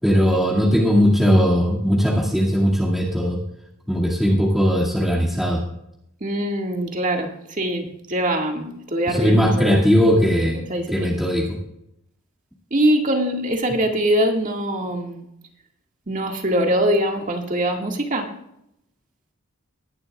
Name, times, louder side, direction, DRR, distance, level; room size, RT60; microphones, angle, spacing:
voice 1, 0.0-3.4 3.9-5.6 9.1-10.6 10.9-11.6, equal, ahead, -5 dB, 2.2 m, -18 dB
voice 2, 6.2-9.8 10.5-11.2 12.7-15.3 16.1-18.3, right 1 dB, 35° right, 2 dB, 2.0 m, -23 dB
20.5 x 11.5 x 2.4 m, 0.79 s
head